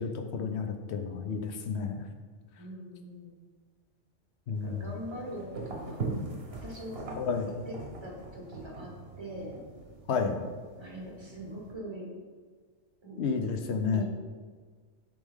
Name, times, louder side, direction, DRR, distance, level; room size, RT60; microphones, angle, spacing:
voice 1, 0.0-2.1 4.5-4.8 7.2-7.5 10.1-10.4 13.2-14.0, left 5 dB, 70° left, 5 dB, 0.9 m, -31 dB
voice 2, 2.6-3.4 4.5-6.0 6.5-7.2 7.7-8.9 9.2-9.6 10.8-12.1 13.0-13.2 13.9-14.0, right 1 dB, 25° right, -2 dB, 1.3 m, -42 dB
sound 1, 4.5-11.7, right 3 dB, 60° right, 1.1 m, -41 dB
8.0 x 3.5 x 3.5 m, 1.5 s
omnidirectional pair, 1.2 m